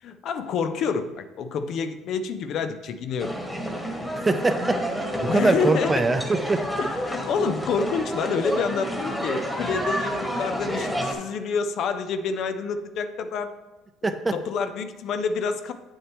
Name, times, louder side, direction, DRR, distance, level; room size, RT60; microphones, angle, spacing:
voice 1, 0.0-3.4 5.3-6.1 6.8-13.5 14.0-15.7, left 5 dB, 60° left, 10 dB, 0.5 m, -28 dB
sound 1, 3.2-11.1, equal, 5° left, 1.4 m, -30 dB
voice 2, 4.3-6.6 14.0-14.3, right 2 dB, 20° right, 9 dB, 0.6 m, -23 dB
8.1 x 6.4 x 3.0 m, 1.1 s
cardioid pair, 110°, 0 cm